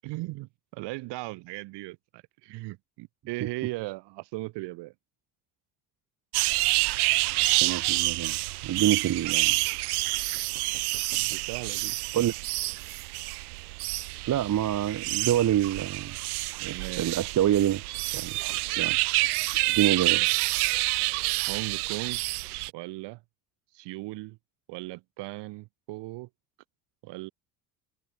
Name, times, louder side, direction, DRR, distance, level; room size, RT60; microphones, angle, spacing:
voice 1, 0.0-4.9 11.2-12.0 16.7-17.1 19.9-20.3 21.5-22.2 22.7-23.2 23.7-24.4 24.7-26.3 27.0-27.3, right 21 dB, 65° right, 7.1 m, -37 dB
sound 1, 6.3-22.7, right 22 dB, 85° right, 0.8 m, -28 dB
voice 2, 7.6-8.4 8.6-9.6 12.1-12.3 14.3-16.2 16.6-19.0 19.8-20.2, right 11 dB, 45° right, 1.4 m, -27 dB
hypercardioid pair, 75°, 44 cm